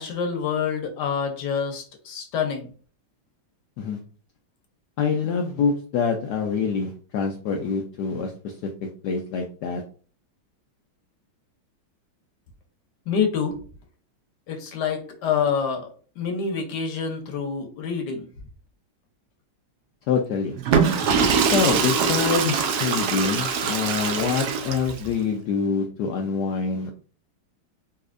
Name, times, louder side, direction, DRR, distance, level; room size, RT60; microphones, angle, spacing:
voice 1, 0.0-2.7 13.1-13.6 14.5-15.9 16.2-18.3, left 6 dB, 65° left, 4 dB, 1.2 m, -27 dB
voice 2, 5.0-8.7 9.0-9.8 20.1-20.6 21.4-26.9, left 5 dB, 90° left, 2 dB, 0.8 m, -25 dB
Water / Toilet flush, 20.6-25.1, right 6 dB, 85° right, 0.8 m, -23 dB
4.1 x 2.7 x 2.4 m, 0.41 s
omnidirectional pair, 2.3 m